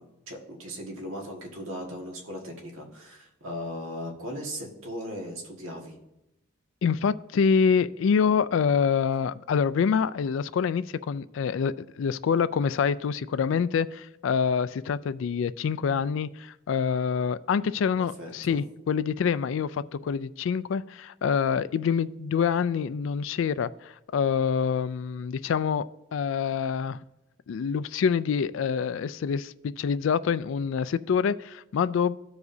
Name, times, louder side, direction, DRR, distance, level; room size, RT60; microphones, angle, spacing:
voice 1, 0.0-6.0 18.2-18.6, equal, 90° right, 1.8 m, -38 dB
voice 2, 6.8-25.9 26.1-27.0 27.5-32.2, left 6 dB, 70° left, 0.3 m, -26 dB
14.5 x 4.9 x 2.7 m
head